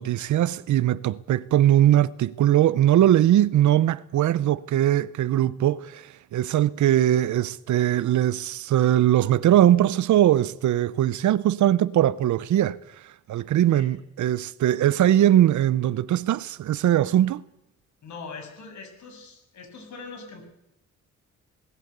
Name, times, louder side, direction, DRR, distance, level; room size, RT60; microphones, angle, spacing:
voice 1, 0.0-12.8 13.3-17.4, right 12 dB, 75° right, 0.9 m, -21 dB
voice 2, 18.0-20.5, left 4 dB, 75° left, 6.9 m, -42 dB
19.0 x 18.5 x 8.2 m
cardioid pair, 115°, 30 cm